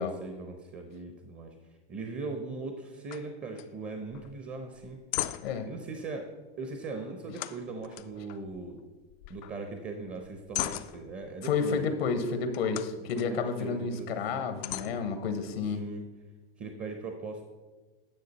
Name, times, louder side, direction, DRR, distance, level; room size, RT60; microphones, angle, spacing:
voice 1, 0.0-1.5 1.9-5.0 5.7-6.3 6.6-8.8 9.3-12.0 13.0-14.5 15.7-16.1 16.6-17.4, right 3 dB, 25° right, 5 dB, 0.9 m, -39 dB
sound 1, 3.1-3.3 3.5-3.7 4.1-4.3 4.8-5.7 7.4-8.8 9.1-9.6 10.0-11.4 12.5-13.3 13.8-13.9 14.6-15.7, left 15 dB, 50° left, 0.4 m, -38 dB
voice 2, 11.4-15.8, left 5 dB, 85° left, 8 dB, 1.0 m, -30 dB
10.0 x 6.3 x 4.1 m, 1.3 s
hypercardioid pair, 125°, 30 cm